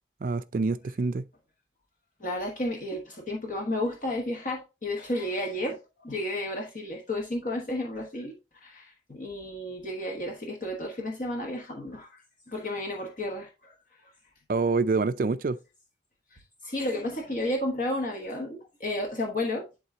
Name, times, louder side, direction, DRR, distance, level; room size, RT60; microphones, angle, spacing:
voice 1, 0.2-1.3 14.5-15.6, right 4 dB, 50° right, 0.4 m, -26 dB
voice 2, 2.2-8.3 8.6-13.7 14.0-14.1 16.3-19.8, left 1 dB, 45° left, 1.2 m, -32 dB
11.0 x 3.7 x 2.7 m
head